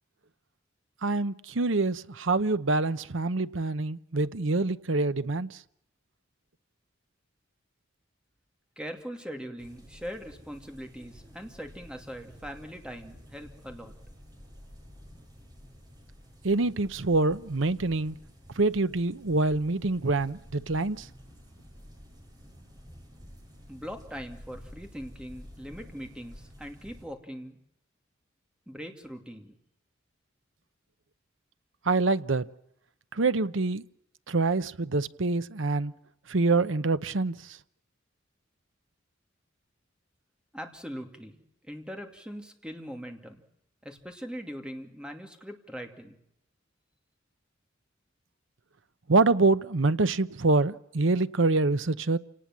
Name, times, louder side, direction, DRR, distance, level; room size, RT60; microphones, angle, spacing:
voice 1, 1.0-5.6 16.4-18.2 18.6-21.1 31.8-32.5 33.1-33.8 34.3-35.9 36.3-37.6 49.1-52.2, right 3 dB, 70° right, 0.9 m, -26 dB
voice 2, 8.8-13.9 23.7-27.6 28.7-29.5 40.5-43.4 43.8-46.2, equal, 5° right, 2.6 m, -41 dB
sound 1, 9.6-27.1, equal, 20° right, 6.5 m, -51 dB
28.0 x 19.0 x 7.5 m
head